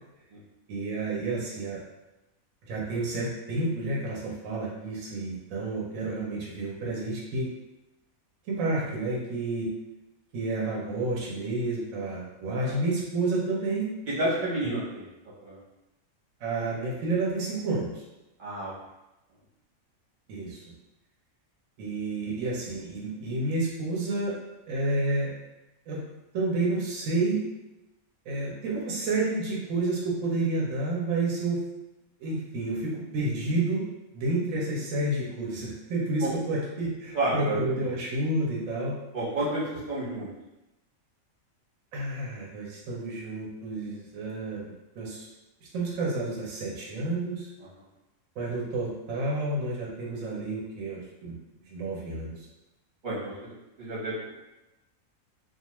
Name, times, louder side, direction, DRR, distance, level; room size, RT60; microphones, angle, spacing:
voice 1, 0.7-1.8 2.7-7.5 8.5-9.7 10.3-13.9 14.6-14.8 16.4-18.0 20.3-20.6 21.8-24.3 24.7-25.3 25.9-26.0 26.3-27.4 28.3-31.6 32.2-33.9 34.1-39.0 41.9-45.3 45.7-47.5 48.4-51.4 51.7-52.5, right 2 dB, 70° right, -4 dB, 1.0 m, -30 dB
voice 2, 14.1-15.1 15.4-15.6 18.4-18.7 36.2-36.3 37.1-37.8 39.1-40.3 53.0-54.3, right 1 dB, 40° right, -8 dB, 1.0 m, -30 dB
2.4 x 2.3 x 2.9 m, 0.98 s
omnidirectional pair, 1.5 m